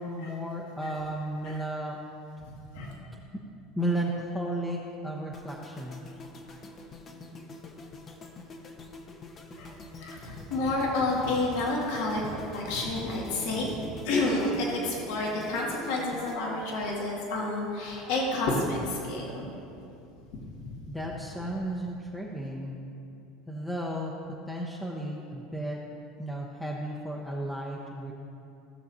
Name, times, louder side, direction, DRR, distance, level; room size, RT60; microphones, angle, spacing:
voice 1, 0.0-2.0 3.8-6.0 20.9-22.8 23.5-24.1 24.5-25.8 26.2-28.1, right 1 dB, 5° left, -3 dB, 1.0 m, -33 dB
sound 1, 5.3-17.5 17.8-18.1, left 2 dB, 35° left, 1.0 m, -46 dB
voice 2, 10.0-13.7 14.0-19.5 20.6-20.7, left 2 dB, 70° left, -3 dB, 2.0 m, -29 dB
16.0 x 6.9 x 2.7 m, 2.7 s
hypercardioid pair, 85°, 0 cm